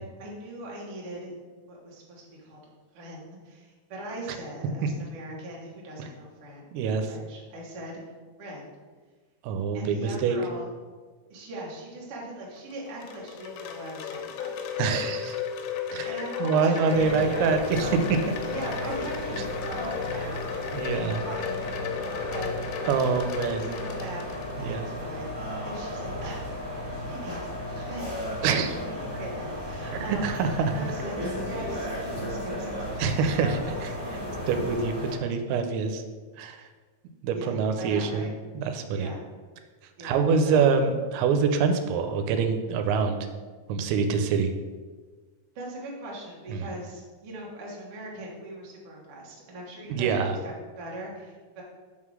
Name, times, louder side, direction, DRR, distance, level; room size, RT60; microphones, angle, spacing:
voice 1, 0.0-1.3 1.7-2.6 2.9-6.6 7.1-8.0 8.4-8.7 9.7-10.7 11.3-14.5 16.0-17.2 18.3-19.3 19.6-20.4 20.8-21.6 22.0-23.1 23.5-28.2 28.7-30.4 30.7-32.9 37.3-38.3 38.9-39.2 40.0-40.2 40.4-40.7 45.5-50.2 50.4-51.6, right 1 dB, 65° right, -4 dB, 1.4 m, -40 dB
voice 2, 6.7-7.1 9.4-10.4 14.8-15.4 15.9-18.2 20.7-21.2 22.9-23.7 24.6-24.9 28.4-28.7 29.9-30.7 33.0-34.2 34.5-36.0 36.4-36.7 37.2-38.3 38.5-39.1 40.0-43.2 43.7-44.5 46.5-46.7 49.9-50.4, right 5 dB, 85° right, 6 dB, 2.9 m, -25 dB
Wind chime, 12.6-24.8, left 7 dB, 80° left, 2.7 m, -34 dB
sound 1, 16.9-35.1, left 1 dB, 30° right, 0.8 m, -34 dB
sound 2, 18.7-19.1 19.5-19.9 20.3-20.7 21.1-21.5 21.9-22.4, left 1 dB, 65° left, 1.6 m, -47 dB
6.3 x 3.7 x 6.2 m, 1.4 s
omnidirectional pair, 5.1 m